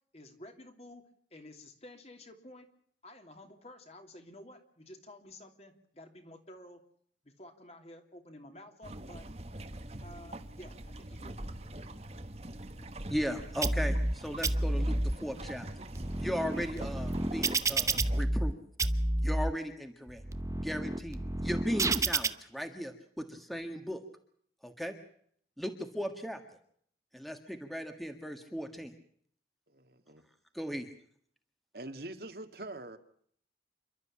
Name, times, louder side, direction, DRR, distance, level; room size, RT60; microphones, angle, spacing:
voice 1, 0.1-1.0 1.3-2.7 3.0-6.8 7.2-9.2 10.0-11.4, left 1 dB, 35° left, 2.9 m, -51 dB
sound 1, 8.8-18.2, right 1 dB, 35° right, 1.4 m, -44 dB
voice 2, 13.1-14.9 15.2-15.7 16.2-18.5 19.2-20.2 20.6-24.0 24.6-24.9 25.6-26.4 27.1-28.9 30.5-30.9, equal, ahead, 1.6 m, -37 dB
sound 2, 13.6-14.1 14.4-15.1 15.7-18.5 18.8-19.5 20.1-22.3, right 2 dB, 20° right, 0.8 m, -30 dB
voice 3, 29.7-30.2 31.7-33.0, right 2 dB, 60° right, 1.9 m, -44 dB
28.5 x 12.5 x 8.7 m
head